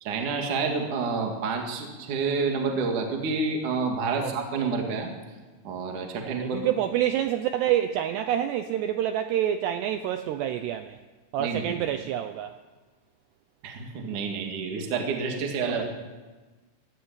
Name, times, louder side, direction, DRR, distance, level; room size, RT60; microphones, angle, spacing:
voice 1, 0.0-5.1 5.6-6.6 11.4-11.9 13.6-15.8, right 4 dB, 45° right, 2 dB, 3.1 m, -29 dB
voice 2, 6.2-11.0 11.3-12.6 15.7-15.8, right 11 dB, 85° right, 9 dB, 2.4 m, -27 dB
23.5 x 16.5 x 8.8 m, 1.3 s
omnidirectional pair, 6.0 m